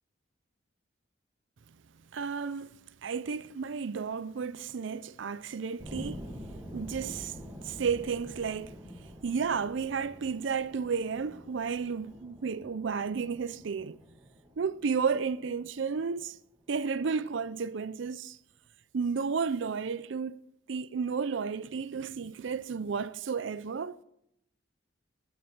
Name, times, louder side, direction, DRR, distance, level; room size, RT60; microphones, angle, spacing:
voice 1, 2.1-2.7 3.0-6.3 6.7-7.4 7.6-14.0 14.6-16.4 16.7-18.4 18.9-20.4 20.7-24.0, right 5 dB, 70° right, 0.5 m, -32 dB
sound 1, 5.8-16.6, equal, 15° right, 2.5 m, -47 dB
14.0 x 11.0 x 5.9 m
head